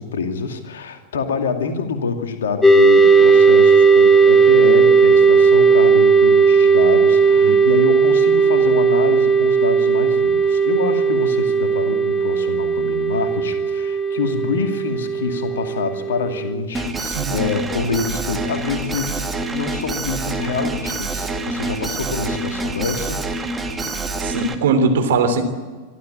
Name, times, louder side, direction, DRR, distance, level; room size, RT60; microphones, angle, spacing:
voice 1, 0.0-23.2, left 4 dB, 65° left, 6 dB, 2.5 m, -26 dB
sound 1, 2.6-16.5, right 5 dB, 10° left, 1.6 m, -15 dB
Alarm, 16.7-24.5, right 2 dB, 10° right, 2.2 m, -26 dB
voice 2, 17.0-17.4 24.2-25.4, right 4 dB, 60° right, 6 dB, 3.2 m, -20 dB
24.5 x 13.0 x 8.9 m, 1.4 s
figure-of-eight pair, 90°, 0 cm